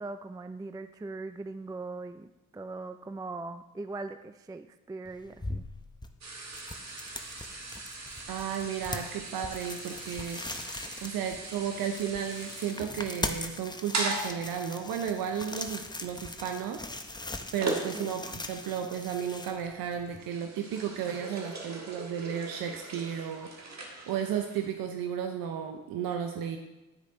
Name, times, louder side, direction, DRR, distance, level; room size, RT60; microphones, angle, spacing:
voice 1, 0.0-5.6 17.9-18.2, right 3 dB, 10° right, 11 dB, 0.3 m, -40 dB
sound 1, 5.1-20.2, left 2 dB, 10° left, 0.7 m, -41 dB
sound 2, 6.2-18.4 18.8-19.1 19.7-24.7, right 2 dB, 50° right, 1.6 m, -40 dB
voice 2, 8.3-10.4 11.0-16.8 17.5-23.5 23.8-26.6, right 8 dB, 80° right, 5 dB, 0.6 m, -33 dB
10.0 x 4.9 x 3.8 m, 1.1 s
supercardioid pair, 45°, 34 cm